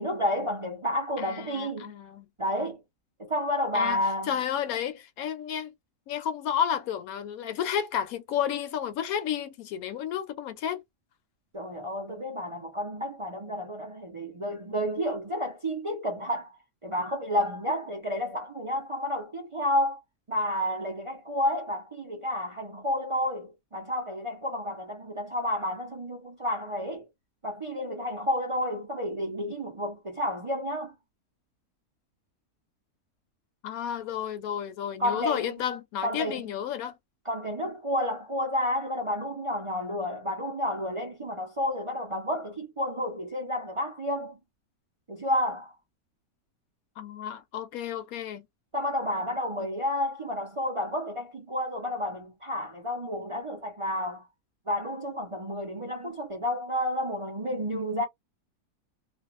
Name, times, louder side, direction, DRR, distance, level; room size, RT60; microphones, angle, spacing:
voice 1, 0.0-1.9 2.4-2.8 3.2-4.4 11.5-20.0 20.3-27.0 27.4-30.9 35.0-35.5 36.0-36.5 37.2-44.4 45.1-45.7 48.7-54.3 54.7-58.0, left 1 dB, 50° right, 0.3 m, -30 dB
voice 2, 1.2-2.3 3.7-4.0 4.3-5.7 6.1-10.8 33.6-36.9 47.0-48.4, left 9 dB, 75° left, 1.0 m, -31 dB
2.5 x 2.2 x 3.0 m
omnidirectional pair, 1.6 m